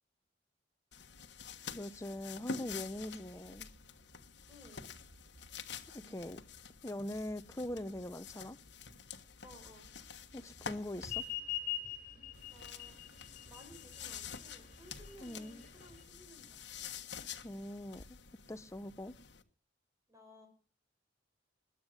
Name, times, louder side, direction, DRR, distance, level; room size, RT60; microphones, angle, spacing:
sound 1, 0.9-11.3 12.3-19.4, left 6 dB, 70° left, 1.4 m, -49 dB
sound 2, 1.4-17.4, right 1 dB, 55° right, 7.0 m, -64 dB
voice 1, 1.7-3.7 5.9-6.4 6.8-8.6 10.3-11.2 15.2-15.6 17.4-18.2 18.5-19.1, left 1 dB, 15° left, 0.7 m, -42 dB
voice 2, 4.5-4.9 9.4-9.9 12.5-13.0 13.5-16.8 20.1-20.5, equal, 15° right, 5.2 m, -58 dB
sound 3, 11.0-16.0, left 12 dB, 50° left, 5.8 m, -42 dB
20.5 x 9.8 x 6.4 m
head